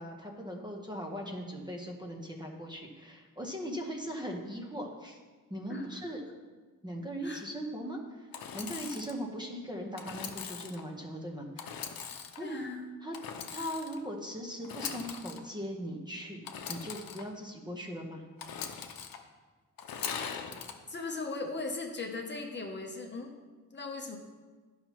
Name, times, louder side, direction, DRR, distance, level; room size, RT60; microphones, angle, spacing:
voice 1, 0.0-5.2 5.5-6.2 6.8-11.8 12.4-12.6 13.0-13.2 13.5-18.2, equal, 10° right, 1 dB, 0.8 m, -39 dB
Engine / Sawing, 8.3-9.2 10.0-10.8 11.6-12.4 13.1-14.0 14.6-15.4 16.4-17.2 18.4-19.2 19.8-20.7, left 7 dB, 75° left, 0.7 m, -40 dB
voice 2, 12.4-12.9 20.9-23.3 23.7-24.2, left 3 dB, 30° left, 1 dB, 0.7 m, -38 dB
11.5 x 5.6 x 3.0 m, 1.4 s
wide cardioid pair, 150°, 35 cm